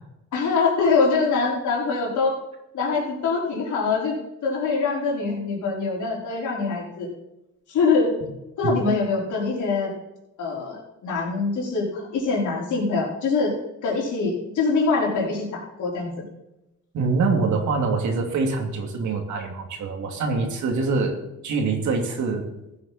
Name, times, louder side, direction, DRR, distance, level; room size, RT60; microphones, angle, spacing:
voice 1, 0.3-2.4 2.7-4.1 4.4-7.1 7.7-8.2 8.6-9.9 10.4-13.5 13.8-16.3, left 4 dB, 80° left, -3 dB, 4.9 m, -24 dB
voice 2, 16.9-22.5, right 4 dB, 70° right, 3 dB, 2.7 m, -25 dB
15.0 x 9.6 x 4.4 m, 0.91 s
cardioid pair, 90°, 30 cm